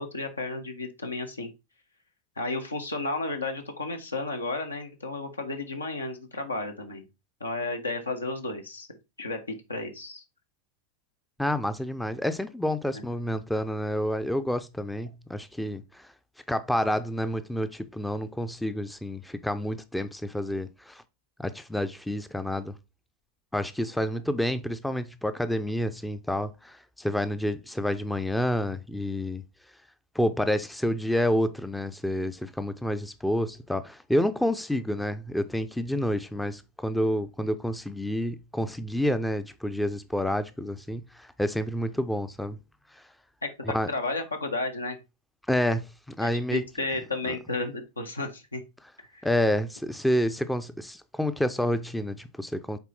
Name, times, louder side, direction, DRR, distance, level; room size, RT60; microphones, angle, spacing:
voice 1, 0.0-1.5 2.4-7.0 7.4-8.9 9.2-10.2 12.9-13.0 43.4-45.0 46.2-48.6 49.1-49.3, left 2 dB, 75° left, 1.3 m, -33 dB
voice 2, 11.4-16.1 16.5-21.0 21.4-22.7 23.5-29.4 30.1-42.6 42.9-43.0 43.7-43.9 45.5-46.6 47.3-47.4 49.2-52.8, left 1 dB, 5° left, 0.6 m, -29 dB
6.8 x 4.4 x 4.3 m
figure-of-eight pair, 90°, 0 cm